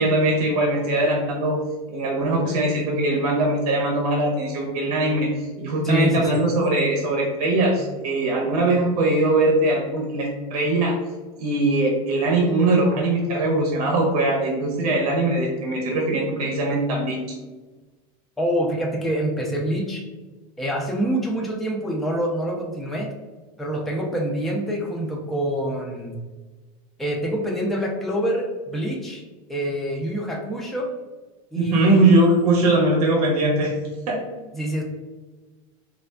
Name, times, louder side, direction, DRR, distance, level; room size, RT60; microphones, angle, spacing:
voice 1, 0.0-1.6 1.9-5.3 5.6-10.9 11.4-17.4 31.6-33.7 34.1-34.2, right 2 dB, 85° right, -1 dB, 0.7 m, -21 dB
voice 2, 5.8-6.5 18.4-20.1 20.6-23.1 23.6-26.2 27.0-29.2 29.5-30.9 31.5-32.1 34.5-34.8, right 1 dB, ahead, -2 dB, 0.4 m, -26 dB
3.2 x 2.4 x 2.2 m, 1.3 s
supercardioid pair, 120°, 19 cm